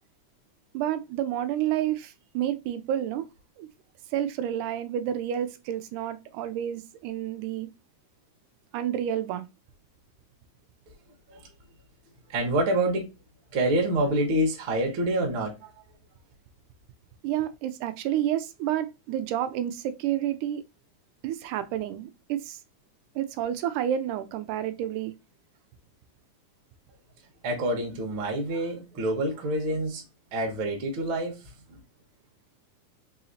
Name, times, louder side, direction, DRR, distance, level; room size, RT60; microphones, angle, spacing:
voice 1, 0.7-3.2 3.6-3.7 4.1-7.7 8.7-9.5 17.2-20.6 21.2-22.6 23.2-25.1, right 11 dB, 85° right, 2.0 m, -30 dB
voice 2, 12.3-13.1 13.5-15.7 27.4-30.0 30.3-31.4 31.7-31.8, right 1 dB, 60° right, 1.4 m, -27 dB
4.8 x 2.8 x 2.7 m
omnidirectional pair, 3.5 m